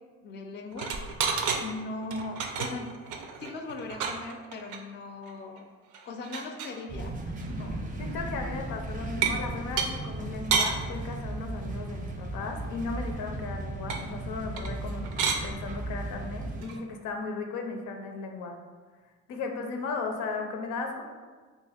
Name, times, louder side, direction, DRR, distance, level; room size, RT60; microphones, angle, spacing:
voice 1, 0.2-1.0 1.6-2.9 3.4-5.6 6.1-7.8, left 3 dB, 35° left, 5 dB, 0.4 m, -39 dB
sound 1, 0.7-1.6 2.0-4.8 5.2-5.3 5.6-5.7 5.9-6.8 7.4-7.6 9.2-9.4 9.8-9.9 10.5-10.8 13.9-14.0 14.6-14.8 15.0-15.4 16.6-16.8, right 5 dB, 80° right, 0.5 m, -30 dB
sound 2, 6.9-16.6, right 2 dB, 25° right, 0.5 m, -36 dB
voice 2, 8.0-15.1 15.4-18.6 19.3-21.0, left 4 dB, 90° left, 3 dB, 0.5 m, -36 dB
2.8 x 2.4 x 4.2 m, 1.5 s
cardioid pair, 90°, 30 cm